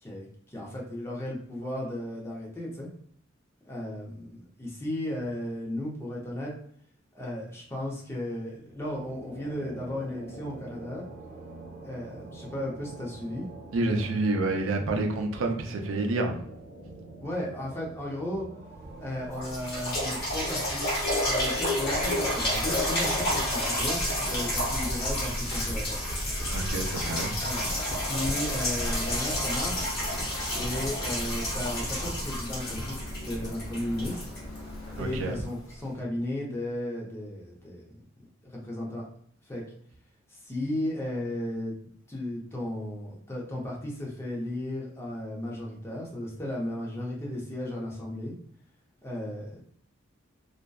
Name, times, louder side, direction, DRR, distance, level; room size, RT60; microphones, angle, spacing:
voice 1, 0.0-2.9 3.6-6.5 7.1-11.0 11.8-13.5 17.2-18.5 19.0-20.9 21.3-24.0 24.3-26.0 27.4-27.8 28.1-29.9 30.5-34.2 35.0-37.9 38.4-39.1 39.5-39.7 40.3-41.7 42.1-48.3 49.0-49.7, left 1 dB, 10° left, -3 dB, 0.6 m, -35 dB
sound 1, 8.7-21.8, right 2 dB, 35° right, 0.7 m, -46 dB
voice 2, 13.7-16.4 26.5-27.3 35.0-35.4, right 2 dB, 70° right, 4 dB, 0.4 m, -28 dB
sound 2, 18.8-18.9 19.3-35.1 35.7-35.8, left 1 dB, 50° left, 0.9 m, -30 dB
Rain, 21.2-35.8, equal, 80° left, 1.1 m, -39 dB
2.5 x 2.1 x 2.2 m, 0.63 s
head